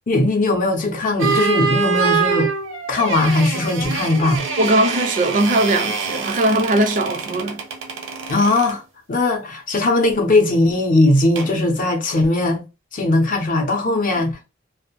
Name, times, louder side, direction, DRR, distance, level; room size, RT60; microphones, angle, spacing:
voice 1, 0.1-2.5 2.9-4.5 8.3-8.8 9.1-12.6 12.9-14.5, left 2 dB, 45° left, 0.6 m, -19 dB
sound 1, 1.2-8.8 11.4-11.6, right 5 dB, 85° right, 0.6 m, -25 dB
voice 2, 4.6-7.6, right 1 dB, 45° right, 0.4 m, -19 dB
2.4 x 2.0 x 2.9 m
head